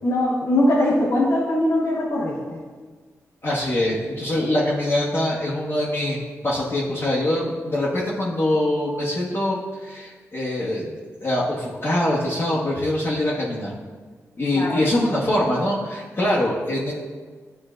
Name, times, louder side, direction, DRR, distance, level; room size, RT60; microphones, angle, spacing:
voice 1, 0.0-2.6 14.5-14.8, left 1 dB, 75° left, -6 dB, 1.1 m, -21 dB
voice 2, 3.4-10.9 11.2-13.7 14.4-16.9, left 1 dB, 45° left, -8 dB, 1.2 m, -23 dB
9.9 x 3.9 x 2.5 m, 1.5 s
cardioid pair, 65°, 6 cm